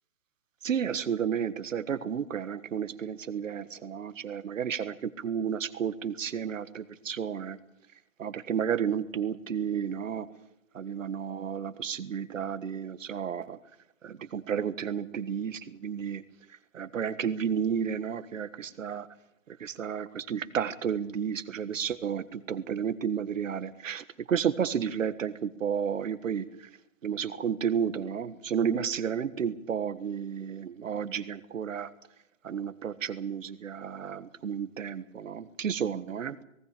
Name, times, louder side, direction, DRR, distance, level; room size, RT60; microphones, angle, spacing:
voice 1, 0.6-7.6 8.2-10.3 10.7-13.6 14.0-16.2 16.7-19.1 19.5-26.7 27.0-31.9 32.4-36.4, right 8 dB, 65° right, 14 dB, 1.6 m, -32 dB
19.0 x 17.5 x 8.4 m, 0.82 s
hypercardioid pair, 160°, 42 cm